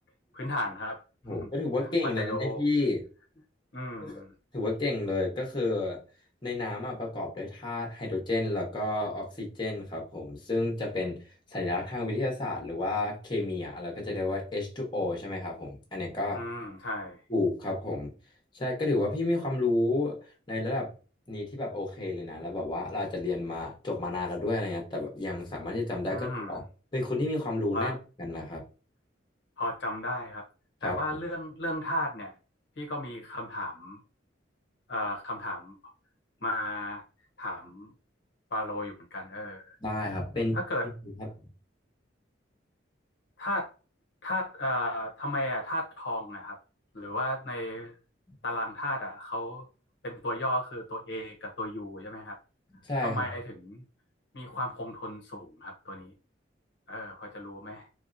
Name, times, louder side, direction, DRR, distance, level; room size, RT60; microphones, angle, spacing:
voice 1, 0.3-1.0 1.4-1.5 2.0-2.6 3.7-4.3 16.3-17.2 26.1-26.6 27.7-28.0 29.6-30.4 30.8-32.3 32.8-34.0 34.9-35.7 36.4-37.0 37.4-37.9 38.5-39.8 40.5-40.9 43.4-43.7 44.2-46.6 46.9-47.9 48.4-49.6 50.0-52.4 53.0-53.8 54.3-56.1 56.9-57.9, left 1 dB, 65° left, 1 dB, 0.8 m, -34 dB
voice 2, 1.2-3.0 4.0-4.1 4.5-6.0 6.4-11.2 11.5-16.4 17.3-18.1 18.5-20.2 20.5-20.9 21.3-26.6 26.9-28.6 30.8-31.0 39.8-40.6 41.0-41.3 52.7-53.3, left 2 dB, 25° left, 0 dB, 1.0 m, -31 dB
3.1 x 2.7 x 2.5 m, 0.35 s
head